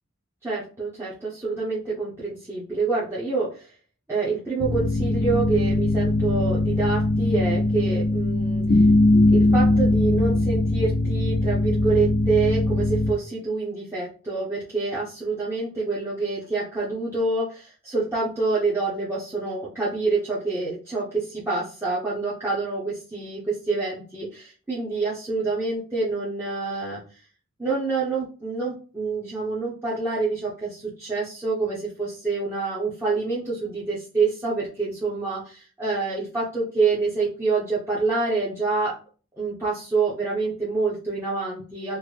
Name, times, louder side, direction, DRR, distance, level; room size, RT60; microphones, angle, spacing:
voice 1, 0.4-3.7 4.1-8.8 9.3-27.0 27.6-39.0 39.3-42.0, right 3 dB, 10° right, -10 dB, 0.8 m, -27 dB
sound 1, 4.6-13.1, left 2 dB, 50° left, 0.4 m, -21 dB
3.8 x 2.1 x 3.2 m, 0.37 s
head